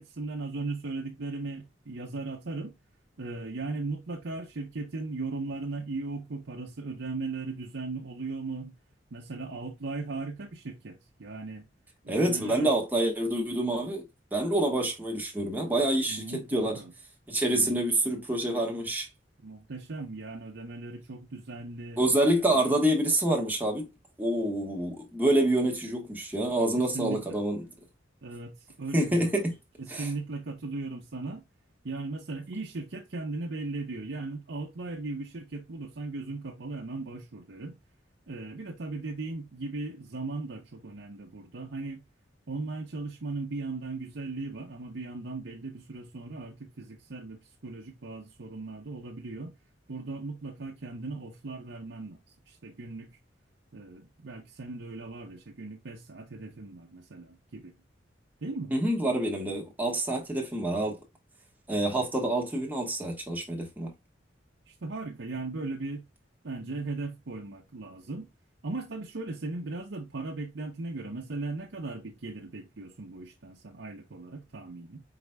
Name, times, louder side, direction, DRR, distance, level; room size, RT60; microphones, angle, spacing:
voice 1, 0.0-2.7 3.2-8.7 9.1-11.7 12.0-12.7 16.1-16.9 17.5-17.8 19.4-22.0 26.8-27.4 28.2-29.4 29.8-31.4 31.8-37.8 38.3-42.0 42.5-49.5 49.9-52.2 52.5-53.2 53.7-57.7 58.4-58.7 64.7-66.0 66.4-68.3 68.6-75.0, right 3 dB, 75° right, 0.7 m, -37 dB
voice 2, 12.1-14.0 14.3-16.8 17.3-19.1 22.0-23.9 24.2-27.7 28.9-29.5 29.9-30.1 58.7-61.0 61.7-63.9, right 1 dB, 10° right, 1.3 m, -27 dB
4.9 x 4.1 x 2.2 m
head